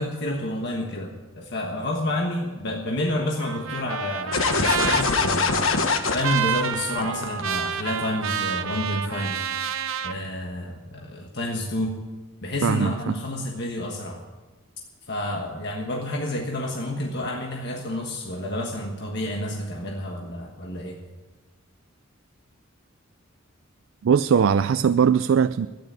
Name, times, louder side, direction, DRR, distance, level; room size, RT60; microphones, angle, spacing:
voice 1, 0.0-5.5 6.1-9.4 10.0-12.0 12.4-14.2 15.1-21.0, left 1 dB, 55° left, 0 dB, 1.4 m, -29 dB
Trumpet, 3.4-10.2, right 8 dB, 90° right, 0.8 m, -29 dB
sound 1, 4.3-7.4, left 4 dB, 80° left, 1.2 m, -23 dB
voice 2, 12.6-13.2 24.0-25.7, right 7 dB, 75° right, 13 dB, 0.4 m, -20 dB
12.5 x 10.0 x 8.6 m, 1.2 s
head